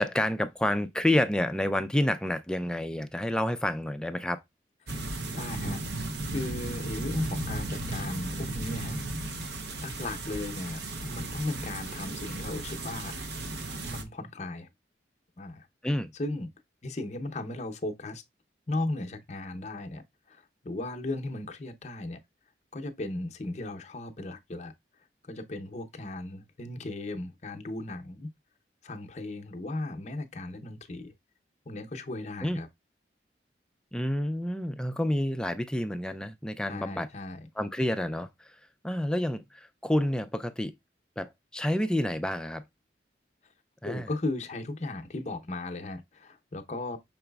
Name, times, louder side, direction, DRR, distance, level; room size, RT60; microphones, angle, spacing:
voice 1, 0.0-4.4 15.8-16.1 32.4-32.6 33.9-37.1 37.6-38.6 38.8-40.7 41.2-42.6 43.8-44.1, left 1 dB, 5° left, 0.3 m, -29 dB
sound 1, 4.9-14.0, right 2 dB, 75° right, 0.8 m, -35 dB
voice 2, 5.3-5.8 6.3-9.0 9.8-13.2 13.8-14.7 15.4-15.7 16.1-16.5 16.8-18.2 18.7-22.2 22.7-24.7 25.2-28.3 28.8-31.1 31.7-32.7 36.7-37.5 43.8-47.0, left 2 dB, 40° left, 0.6 m, -36 dB
5.9 x 3.9 x 2.3 m
head